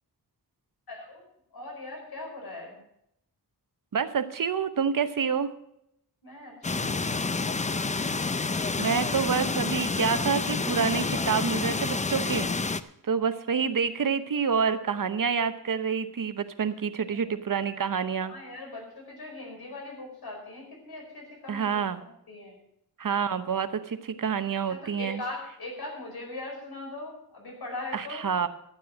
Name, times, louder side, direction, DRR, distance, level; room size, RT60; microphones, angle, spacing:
voice 1, 0.9-1.2 1.5-2.8 6.2-7.1 18.2-22.6 24.7-28.3, left 2 dB, 75° left, 1 dB, 5.2 m, -40 dB
voice 2, 3.9-5.5 8.8-12.5 13.0-18.3 21.5-22.0 23.0-25.2 27.9-28.5, right 6 dB, 60° right, 10 dB, 0.9 m, -28 dB
sound 1, 6.6-12.8, left 3 dB, 20° left, 0.4 m, -29 dB
12.5 x 9.0 x 6.2 m, 0.76 s
wide cardioid pair, 145°, 37 cm